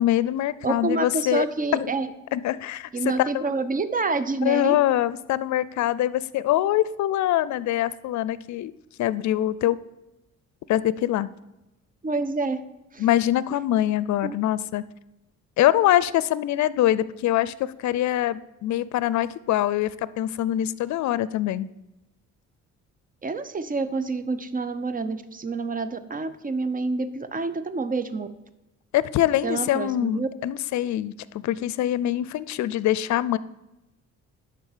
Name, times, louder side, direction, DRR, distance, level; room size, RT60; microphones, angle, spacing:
voice 1, 0.0-1.5 1.7-1.9 2.3-2.9 3.2-3.5 4.4-8.7 9.0-9.8 10.7-11.3 13.0-14.8 15.6-21.7 28.9-31.1 31.4-33.4, left 13 dB, 65° left, 18 dB, 0.5 m, -24 dB
voice 2, 0.6-2.1 2.9-4.7 12.0-12.6 12.9-13.0 14.2-14.4 23.2-28.3 29.4-30.3, right 3 dB, 30° right, 13 dB, 0.8 m, -27 dB
10.5 x 4.0 x 7.3 m, 0.97 s
cardioid pair, 90°, 30 cm